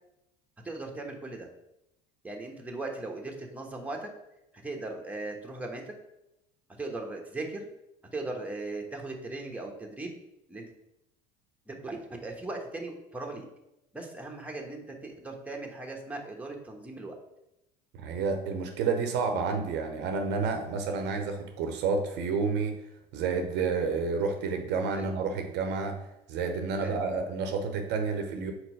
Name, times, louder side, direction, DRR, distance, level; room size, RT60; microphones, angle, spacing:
voice 1, 0.6-1.5 2.2-4.1 4.5-5.9 6.8-7.7 8.1-10.2 10.5-10.7 11.7-13.5 13.9-17.1 24.9-25.1 26.8-27.0, right 2 dB, 5° right, 1 dB, 1.2 m, -38 dB
voice 2, 17.9-22.7 23.1-26.0 26.3-28.5, right 4 dB, 55° right, 5 dB, 0.8 m, -30 dB
4.4 x 4.3 x 5.1 m, 0.86 s
hypercardioid pair, 70°, 21 cm